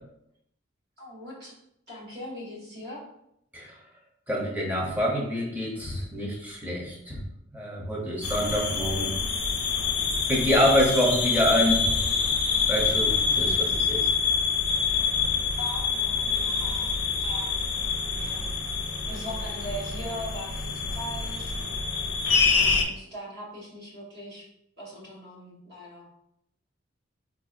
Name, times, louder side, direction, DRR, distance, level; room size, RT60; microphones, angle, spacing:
voice 1, 1.0-1.5 1.9-3.0 15.6-16.9 17.2-17.6 18.1-18.5 19.1-21.5 22.5-24.4 24.8-26.1, equal, 55° right, -5 dB, 1.3 m, -40 dB
voice 2, 4.3-7.2 7.5-9.1 10.3-11.9 12.7-14.1, equal, 10° right, -2 dB, 0.7 m, -26 dB
sound 1, 8.2-22.8, left 5 dB, 80° left, 0.5 m, -26 dB
4.2 x 2.7 x 2.4 m, 0.77 s
head